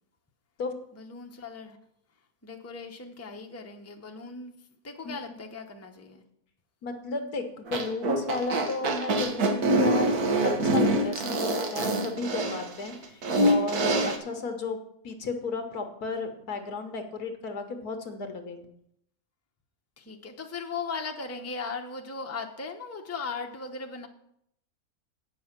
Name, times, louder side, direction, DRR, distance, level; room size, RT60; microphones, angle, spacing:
voice 1, 0.9-1.8 2.4-4.5 4.8-6.2 14.0-14.2 20.0-24.1, left 4 dB, 15° left, 3 dB, 0.7 m, -38 dB
voice 2, 6.8-10.1 10.4-14.8 15.0-18.6, left 3 dB, 90° left, 6 dB, 1.7 m, -34 dB
sound 1, 7.7-14.2, right 1 dB, 85° right, 1.7 m, -25 dB
8.8 x 6.3 x 7.2 m, 0.74 s
omnidirectional pair, 1.6 m